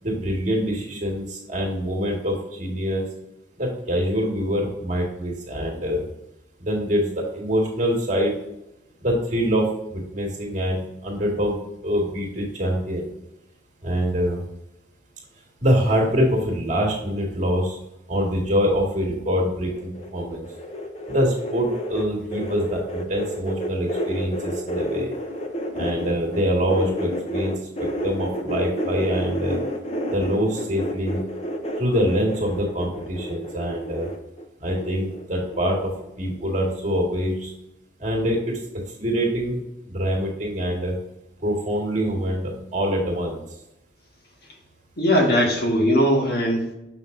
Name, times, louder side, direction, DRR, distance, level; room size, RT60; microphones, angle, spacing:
voice 1, 0.0-3.0 3.6-6.0 6.6-8.3 9.0-13.1 13.8-14.4 15.6-17.8 18.1-20.5 21.1-25.1 25.7-29.6 30.1-31.2 31.8-34.1 34.6-35.9 36.2-37.5 38.0-38.6 39.0-41.0 41.4-43.4, equal, 40° right, -1 dB, 1.9 m, -24 dB
sound 1, 19.7-26.4 26.7-35.7 36.0-36.4 36.7-36.8, equal, 35° left, 0.8 m, -30 dB
voice 2, 45.0-46.7, equal, 55° left, 0 dB, 1.5 m, -20 dB
6.7 x 5.7 x 2.6 m, 0.87 s
head